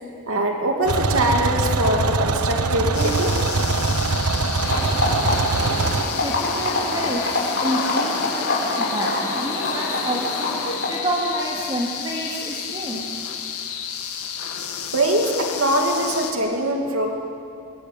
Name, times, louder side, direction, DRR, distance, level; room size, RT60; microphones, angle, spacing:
voice 1, 0.3-3.4 14.9-17.1, right 1 dB, 70° right, 2 dB, 2.6 m, -22 dB
sound 1, 0.9-6.1, right 3 dB, 90° right, 1.3 m, -22 dB
sound 2, 2.9-16.3, left 7 dB, 85° left, 2.4 m, -31 dB
sound 3, 4.6-11.0, left 2 dB, 50° left, 5.9 m, -25 dB
voice 2, 6.0-13.1, right 1 dB, 20° right, -4 dB, 2.8 m, -29 dB
27.5 x 23.0 x 9.3 m, 2.5 s
head